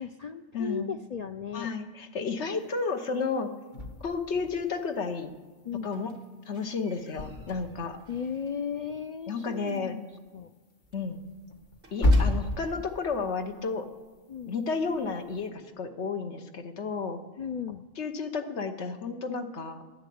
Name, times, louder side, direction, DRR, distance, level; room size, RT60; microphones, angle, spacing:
voice 1, 0.0-1.7 5.7-5.9 8.1-10.1 10.3-10.5 14.3-14.6 17.4-17.8, left 7 dB, 60° left, 8 dB, 0.4 m, -35 dB
voice 2, 0.5-0.9 1.5-3.5 4.0-5.3 5.8-6.1 6.5-8.0 9.3-10.0 10.9-11.2 11.9-13.9 14.5-17.2 18.0-19.8, left 4 dB, 80° left, 7 dB, 1.4 m, -32 dB
sound 1, 2.6-2.7 3.7-6.4 6.7-9.4 9.7-9.8 10.1-14.5 14.8-15.5, left 1 dB, 45° left, 1.3 m, -32 dB
Squeak, 5.9-8.7 9.0-9.4 9.7-9.8 10.2-10.3 10.5-10.7 10.9-12.8 13.6-13.7, right 2 dB, 75° right, 2.9 m, -52 dB
10.5 x 10.5 x 8.5 m, 1.3 s
omnidirectional pair, 1.1 m